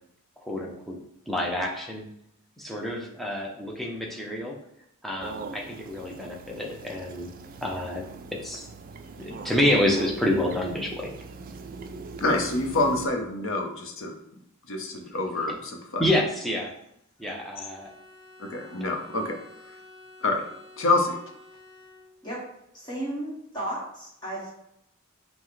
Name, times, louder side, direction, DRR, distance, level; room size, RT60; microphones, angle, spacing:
voice 1, 0.4-1.0 1.3-2.1 2.6-4.6 5.0-7.3 7.6-8.7 9.2-11.1 16.0-16.7 17.2-17.9 18.7-18.8, left 1 dB, ahead, -1 dB, 0.6 m, -28 dB
sound 1, 5.2-13.1, right 4 dB, 40° right, 0.3 m, -41 dB
voice 2, 12.2-14.1 14.7-16.0 18.4-19.4 20.2-20.4 20.8-21.2, left 2 dB, 65° left, 3 dB, 0.7 m, -26 dB
Bowed string instrument, 17.2-22.4, left 2 dB, 85° left, 0.9 m, -51 dB
voice 3, 22.7-24.5, right 1 dB, 20° left, -7 dB, 1.1 m, -34 dB
5.7 x 2.1 x 3.1 m, 0.77 s
head